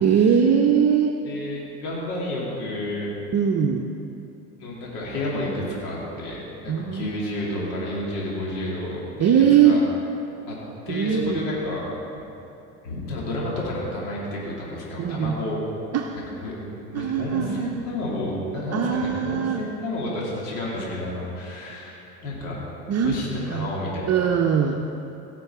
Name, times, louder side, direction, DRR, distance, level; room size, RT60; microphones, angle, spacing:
voice 1, 0.0-1.2 3.3-3.9 6.7-7.3 9.2-9.8 10.9-11.4 15.0-15.3 15.9-16.2 16.9-17.8 18.7-19.6 22.9-23.2 23.5-23.7 24.1-24.8, right 8 dB, 35° right, 3 dB, 0.7 m, -21 dB
voice 2, 1.2-3.1 4.6-9.3 9.6-9.8 10.5-10.6 10.9-11.8 12.8-15.6 16.3-22.6 23.0-24.3, left 1 dB, 75° left, -5 dB, 2.8 m, -31 dB
17.5 x 6.0 x 4.9 m, 2.8 s
hypercardioid pair, 70°, 46 cm